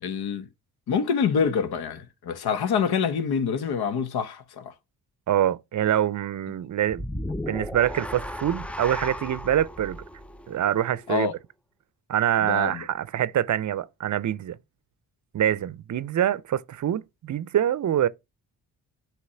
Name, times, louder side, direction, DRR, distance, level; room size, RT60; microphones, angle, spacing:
voice 1, 0.0-0.5 0.9-4.7 11.1-11.3 12.4-12.9, left 6 dB, 60° left, 1.1 m, -26 dB
voice 2, 5.3-7.1 7.5-10.0 10.5-11.3 12.1-14.6 15.3-18.1, right 11 dB, 45° right, 0.6 m, -25 dB
sound 1, 6.9-11.2, left 1 dB, 5° left, 0.4 m, -35 dB
8.1 x 3.1 x 5.6 m
hypercardioid pair, 50°, 42 cm